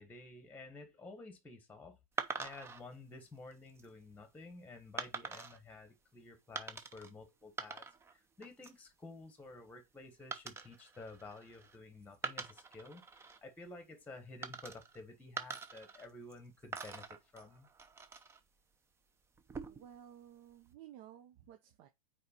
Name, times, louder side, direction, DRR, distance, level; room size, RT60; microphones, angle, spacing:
voice 1, 0.0-7.9 8.1-17.7, left 2 dB, 10° left, 1.3 m, -52 dB
sound 1, 2.2-2.8 3.5-3.8 5.0-5.6 6.5-7.1 7.4-8.1 8.4-8.8 10.3-11.8 12.1-13.4 14.4-15.0 15.4-16.4 16.7-18.4 19.3-20.0, right 5 dB, 15° right, 0.7 m, -44 dB
voice 2, 19.7-21.9, right 10 dB, 45° right, 0.9 m, -55 dB
6.6 x 4.8 x 4.3 m
hypercardioid pair, 130°, 18 cm